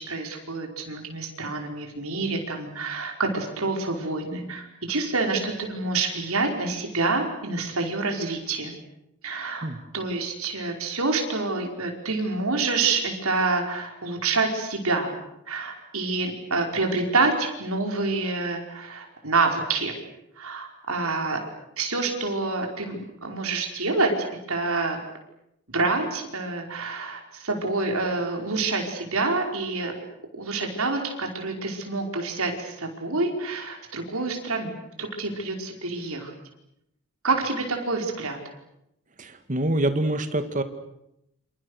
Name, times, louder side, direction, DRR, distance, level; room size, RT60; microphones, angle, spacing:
voice 1, 0.0-8.7 9.2-9.7 9.9-15.1 15.5-19.9 20.4-21.4 21.8-25.0 25.7-29.9 30.4-36.3 37.2-38.4, right 3 dB, 75° right, 3 dB, 5.2 m, -27 dB
voice 2, 39.2-40.6, right 1 dB, 35° right, 9 dB, 2.1 m, -25 dB
29.0 x 27.5 x 6.6 m, 0.82 s
head